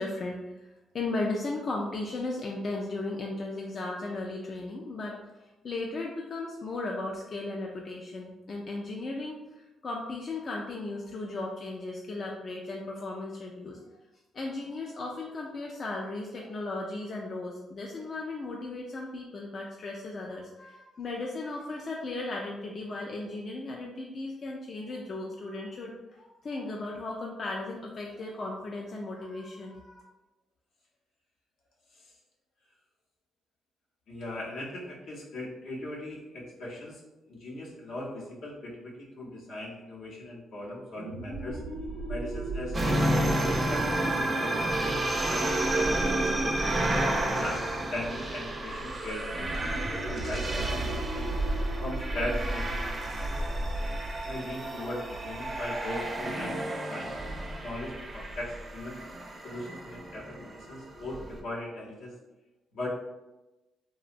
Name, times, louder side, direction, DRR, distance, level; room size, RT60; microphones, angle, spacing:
voice 1, 0.0-13.8 14.3-30.0, left 2 dB, 45° left, -1 dB, 0.3 m, -36 dB
voice 2, 34.1-37.0 37.3-41.6 42.1-44.0 44.3-46.8 47.3-47.6 47.9-51.3 51.8-52.8 54.2-57.1 57.6-59.0 59.4-62.1 62.7-62.9, left 1 dB, 75° left, -4 dB, 0.7 m, -39 dB
sound 1, 40.9-46.2 49.3-54.6, right 2 dB, 80° right, 0.6 m, -38 dB
sound 2, 42.7-61.4, right 1 dB, 25° right, 0.4 m, -31 dB
2.8 x 2.1 x 2.5 m, 1.0 s
cardioid pair, 90°, 0 cm